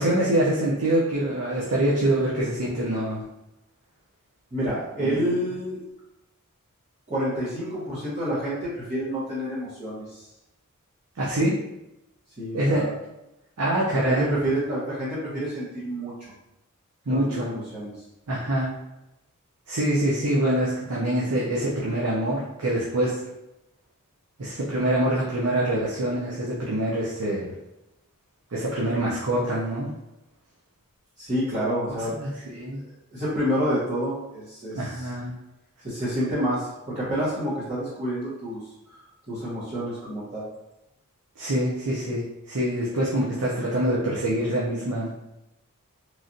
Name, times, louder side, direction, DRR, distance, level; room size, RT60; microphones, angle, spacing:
voice 1, 0.0-3.2 5.0-5.3 11.2-11.6 12.5-12.8 13.6-14.3 17.1-17.5 18.3-18.7 19.7-23.1 24.4-27.5 28.5-29.9 32.2-32.8 34.7-35.3 41.4-45.1, right 1 dB, 80° right, -6 dB, 0.6 m, -25 dB
voice 2, 4.5-5.8 7.1-10.2 12.4-12.9 13.9-16.1 17.1-17.9 31.2-32.1 32.4-32.8 33.1-35.1 35.8-38.6 39.3-40.4, equal, 35° right, -13 dB, 1.1 m, -28 dB
3.1 x 2.4 x 2.6 m, 0.92 s
head